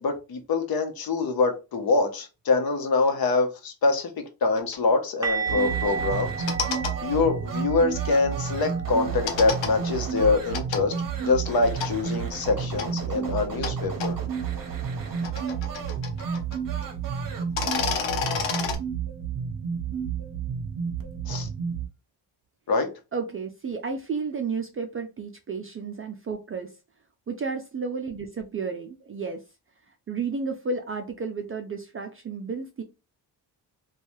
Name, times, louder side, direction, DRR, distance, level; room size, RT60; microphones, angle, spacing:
voice 1, 0.0-6.3 7.0-10.9 11.2-14.2 21.3-21.5 22.7-22.9, left 3 dB, 55° left, 0.9 m, -25 dB
sound 1, 4.6-4.8 6.3-6.9 9.3-9.7 10.5-10.8 11.8-11.9 12.8-12.9 13.6-13.7 14.0-14.1 15.0-16.6 16.8-16.9 17.4-18.8, left 6 dB, 85° left, 0.8 m, -29 dB
sound 2, 5.2-11.0 11.3-11.5 11.8-12.0 15.2-15.3, right 5 dB, 10° right, 0.8 m, -35 dB
sound 3, 5.5-21.9, right 7 dB, 50° right, 0.8 m, -31 dB
voice 2, 23.1-26.7 27.3-29.4 30.1-32.8, right 4 dB, 30° right, 0.4 m, -32 dB
3.1 x 2.3 x 2.6 m
cardioid pair, 100°, 44 cm